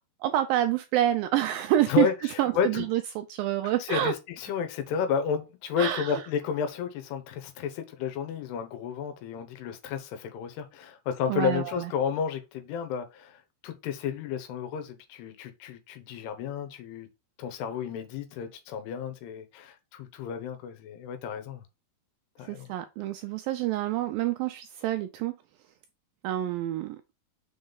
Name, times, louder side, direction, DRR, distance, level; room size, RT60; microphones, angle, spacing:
voice 1, 0.2-2.1 2.4-4.1 5.8-6.2 11.3-11.9 22.5-25.3 26.2-27.0, right 13 dB, 80° right, 2.1 m, -27 dB
voice 2, 1.9-2.9 3.6-17.1 17.4-21.6 22.4-22.7, left 7 dB, 85° left, 3.1 m, -32 dB
6.4 x 4.0 x 5.3 m
omnidirectional pair, 4.6 m